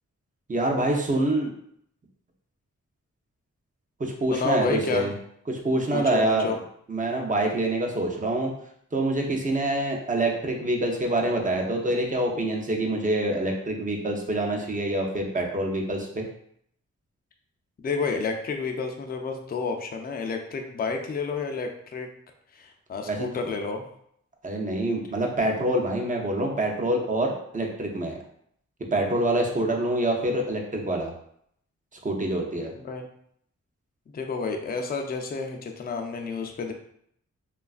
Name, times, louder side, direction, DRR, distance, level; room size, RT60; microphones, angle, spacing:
voice 1, 0.5-1.5 4.0-5.1 5.5-6.6 6.9-8.5 8.9-16.3 23.1-23.3 24.4-28.2 28.9-31.1 32.0-32.7, right 1 dB, 25° right, 1 dB, 0.6 m, -26 dB
voice 2, 4.3-5.1 5.9-6.6 17.8-22.1 22.5-23.9 32.7-33.0 34.1-36.7, left 4 dB, 30° left, 4 dB, 0.4 m, -30 dB
3.0 x 2.3 x 2.4 m, 0.70 s
wide cardioid pair, 75°, 31 cm